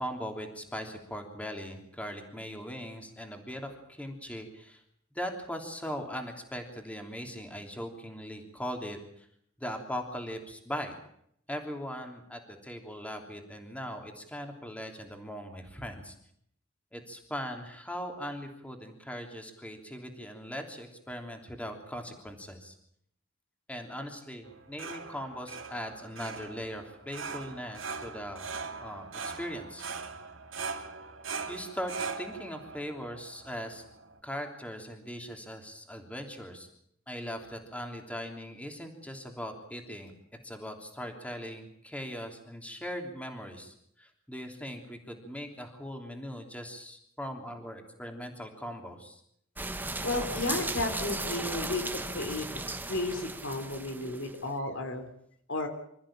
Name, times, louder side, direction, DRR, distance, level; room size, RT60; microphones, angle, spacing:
voice 1, 0.0-4.8 5.1-9.3 9.6-10.9 11.5-16.1 16.9-22.7 23.7-28.5 28.8-29.9 31.5-33.8 34.2-36.7 37.1-40.1 40.4-49.2, equal, 5° left, 4 dB, 3.2 m, -40 dB
sound 1, 24.4-34.2, right 4 dB, 70° right, 3.0 m, -41 dB
sound 2, 49.6-54.4, right 2 dB, 10° right, 1.4 m, -36 dB
voice 2, 50.0-52.4 52.9-55.1 55.5-55.7, left 2 dB, 70° left, 7 dB, 3.6 m, -33 dB
26.5 x 14.5 x 8.9 m, 0.71 s
head